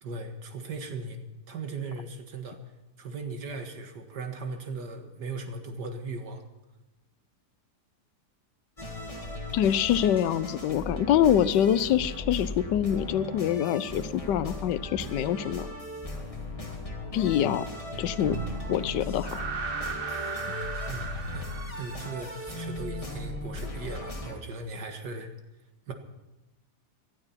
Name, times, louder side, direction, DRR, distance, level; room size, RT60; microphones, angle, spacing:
voice 1, 0.0-1.2 1.5-2.6 3.0-6.4 20.9-21.5 21.8-25.3 25.9-26.0, right 3 dB, 75° right, 5 dB, 2.2 m, -38 dB
sound 1, 8.8-24.4, left 1 dB, 20° left, 1.9 m, -37 dB
voice 2, 9.5-15.7 17.1-17.7 18.0-18.4 18.7-19.5, left 10 dB, 85° left, 15 dB, 1.3 m, -25 dB
sound 2, 18.2-22.6, right 5 dB, 40° right, 1.0 m, -36 dB
18.5 x 12.0 x 5.7 m, 1.0 s
omnidirectional pair, 1.8 m